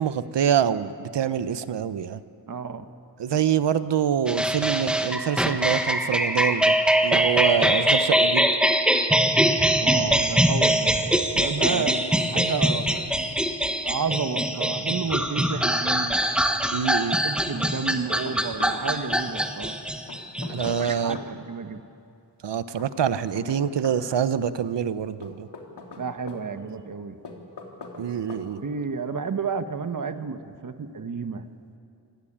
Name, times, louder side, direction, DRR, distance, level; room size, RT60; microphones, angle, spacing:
voice 1, 0.0-2.2 3.2-6.8 7.0-8.5 11.6-11.9 16.7-17.2 20.5-21.2 22.4-25.5 28.0-28.6, right 8 dB, 80° right, 13 dB, 1.0 m, -25 dB
voice 2, 2.5-2.9 9.8-13.4 13.8-16.2 17.0-19.8 20.5-21.8 26.0-27.2 28.6-31.4, right 5 dB, 50° right, 9 dB, 1.4 m, -31 dB
sound 1, 4.3-21.1, right 1 dB, ahead, 1.5 m, -23 dB
Knock, 15.2-16.0 16.2-16.3 17.6-18.8 20.1-21.3 22.8-24.0 25.2-26.4 27.2-28.0 28.3-28.5, left 4 dB, 70° left, 3.3 m, -41 dB
27.5 x 19.0 x 8.8 m, 2.6 s
wide cardioid pair, 105°, 42 cm